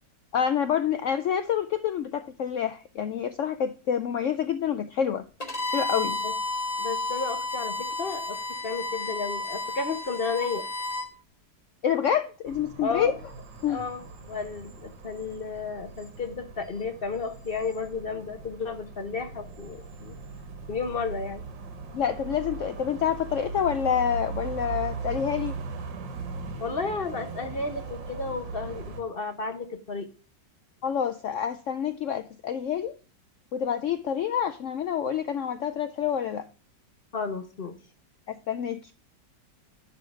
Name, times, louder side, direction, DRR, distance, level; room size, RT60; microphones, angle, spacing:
voice 1, 0.3-5.3 5.7-6.2 11.8-13.1 13.6-13.8 21.9-25.6 30.8-33.0 33.5-36.5 38.3-38.9, left 8 dB, 85° left, 0.6 m, -27 dB
Bowed string instrument, 5.4-11.1, left 2 dB, 25° left, 1.3 m, -32 dB
voice 2, 6.8-8.4 8.6-10.6 12.8-13.2 13.7-20.1 20.7-21.4 26.6-30.1 37.1-37.7, left 4 dB, 40° left, 0.8 m, -32 dB
sound 1, 12.5-29.0, right 4 dB, 90° right, 1.8 m, -39 dB
11.0 x 3.7 x 4.6 m
omnidirectional pair, 1.9 m